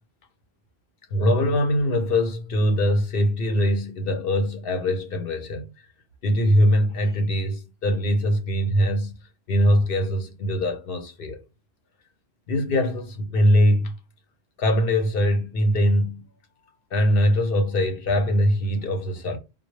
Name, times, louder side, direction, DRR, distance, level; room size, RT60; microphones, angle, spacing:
voice 1, 1.1-5.6 6.2-9.2 9.5-11.4 12.5-13.9 14.6-16.3 16.9-19.4, equal, 65° left, 0.9 m, -22 dB
3.7 x 2.3 x 3.1 m
omnidirectional pair, 1.1 m